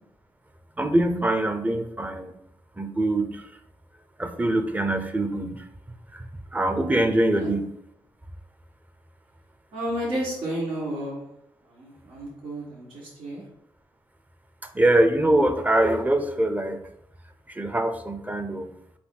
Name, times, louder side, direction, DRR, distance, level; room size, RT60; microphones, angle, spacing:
voice 1, 0.8-2.3 2.8-3.4 4.2-5.6 6.1-6.3 6.5-7.7 14.7-16.8 17.5-18.7, right 1 dB, 15° right, 7 dB, 0.7 m, -23 dB
voice 2, 9.7-11.2 11.8-13.4, right 1 dB, 80° right, -8 dB, 1.6 m, -31 dB
4.1 x 2.7 x 4.6 m, 0.77 s
supercardioid pair, 55°, 10 cm